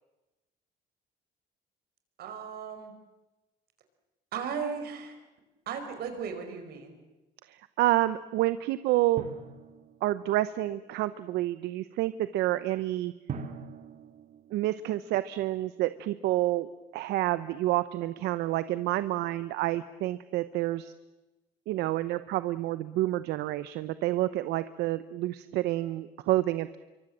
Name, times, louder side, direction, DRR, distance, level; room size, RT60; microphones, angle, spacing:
voice 1, 2.2-2.9 4.3-5.1 5.6-7.0, right 6 dB, 70° right, 7 dB, 4.9 m, -36 dB
voice 2, 7.5-9.3 10.0-13.1 14.5-20.9 21.7-26.8, right 15 dB, 85° right, 14 dB, 0.8 m, -29 dB
Drum, 9.2-10.7 13.3-15.5, right 6 dB, 50° right, 2.7 m, -43 dB
27.0 x 24.0 x 7.5 m, 1.1 s
cardioid pair, 110°, 17 cm